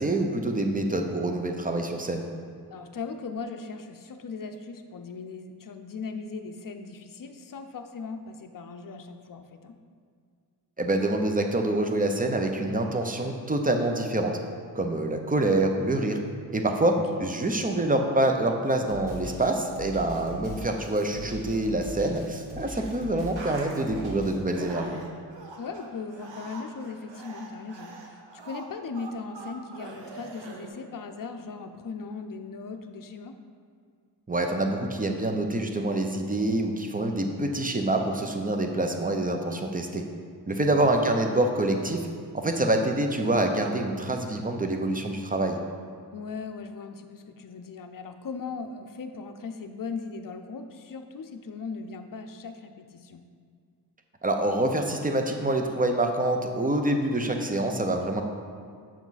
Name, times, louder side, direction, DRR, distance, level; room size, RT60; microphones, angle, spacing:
voice 1, 0.0-2.3 10.8-14.3 14.7-16.2 16.5-25.0 34.3-40.0 40.5-42.0 42.3-45.6 54.2-58.2, right 1 dB, 20° right, 4 dB, 0.7 m, -26 dB
voice 2, 2.7-9.8 16.8-17.3 25.6-33.4 40.7-41.1 46.1-53.2, left 4 dB, 50° left, 7 dB, 0.6 m, -38 dB
Drum kit, 18.9-24.3, right 1 dB, 60° right, 1.8 m, -41 dB
sound 1, 22.8-22.9 23.1-24.1 24.5-30.7, right 3 dB, 90° right, 0.9 m, -43 dB
7.0 x 5.9 x 4.1 m, 2.2 s
wide cardioid pair, 75°, 42 cm